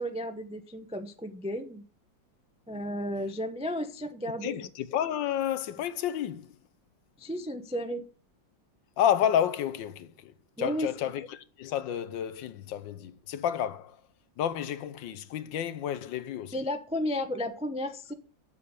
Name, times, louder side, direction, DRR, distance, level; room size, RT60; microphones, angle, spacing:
voice 1, 0.0-1.8 2.7-4.6 7.2-8.0 10.6-10.9 16.5-18.1, equal, 10° right, 0.4 m, -33 dB
voice 2, 4.4-6.5 9.0-10.3 10.6-14.0 14.4-16.5, left 10 dB, 75° left, 1.5 m, -30 dB
7.5 x 7.1 x 8.3 m
omnidirectional pair, 2.1 m